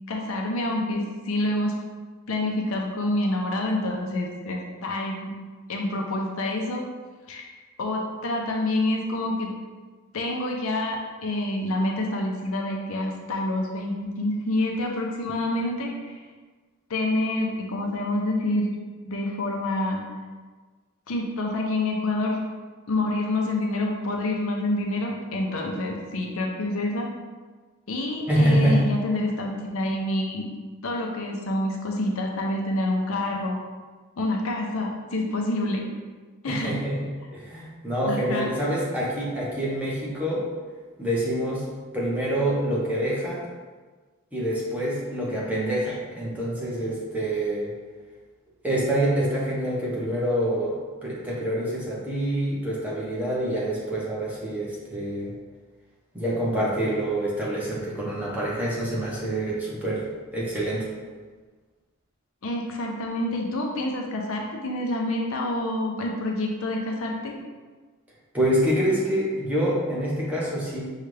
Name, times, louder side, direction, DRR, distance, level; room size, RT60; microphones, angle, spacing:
voice 1, 0.1-1.8 2.3-5.4 5.7-6.8 7.3-7.5 7.8-9.5 10.1-16.2 16.9-18.7 19.0-20.0 21.1-22.4 22.9-27.1 27.9-30.6 30.8-33.6 34.2-35.8 36.4-36.8 38.0-38.5 62.4-67.3, left 1 dB, 70° left, 0 dB, 0.6 m, -27 dB
voice 2, 28.3-28.8 36.5-40.4 41.0-41.7 41.9-43.4 44.3-47.7 48.6-50.7 51.0-55.3 56.1-60.0 60.3-60.9 68.3-70.8, right 1 dB, 5° right, -6 dB, 0.8 m, -26 dB
5.5 x 2.4 x 3.3 m, 1.4 s
head